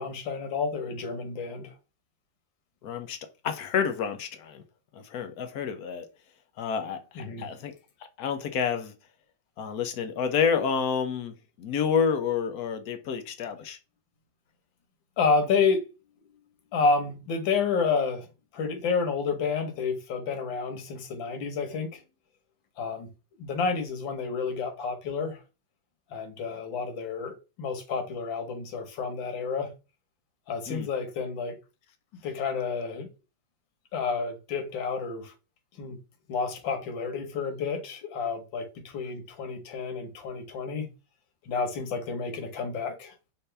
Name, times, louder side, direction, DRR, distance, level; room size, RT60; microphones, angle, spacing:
voice 1, 0.0-1.7 7.2-7.5 15.2-15.9 16.7-18.3 18.5-22.0 22.8-23.1 23.4-25.4 26.1-29.7 30.5-31.6 32.2-33.1 33.9-35.3 35.8-36.0 36.3-40.9 41.5-43.1, left 5 dB, 90° left, 1.8 m, -30 dB
voice 2, 2.8-3.2 3.4-4.6 4.9-6.1 6.6-7.7 8.2-8.9 9.6-13.8 30.7-30.9, left 6 dB, 65° left, 1.1 m, -29 dB
5.7 x 2.6 x 3.3 m
omnidirectional pair, 2.0 m